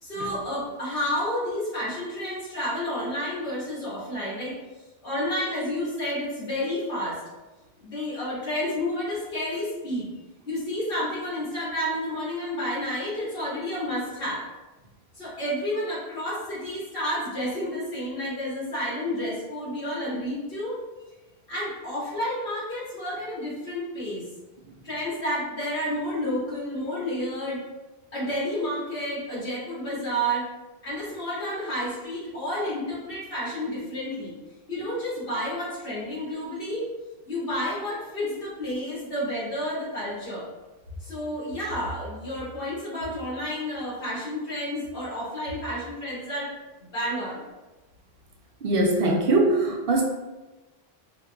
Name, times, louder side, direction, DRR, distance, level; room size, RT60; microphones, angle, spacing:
voice 1, 0.0-4.5 5.0-7.2 7.8-10.1 10.5-14.4 15.1-20.8 21.5-24.2 24.8-27.6 28.1-30.5 30.8-34.4 34.7-36.9 37.3-40.4 41.0-46.5 46.9-47.4, equal, 60° left, -9 dB, 1.7 m, -30 dB
voice 2, 48.6-50.0, right 2 dB, 65° right, 0 dB, 0.7 m, -21 dB
4.5 x 3.0 x 2.2 m, 1.1 s
omnidirectional pair, 1.1 m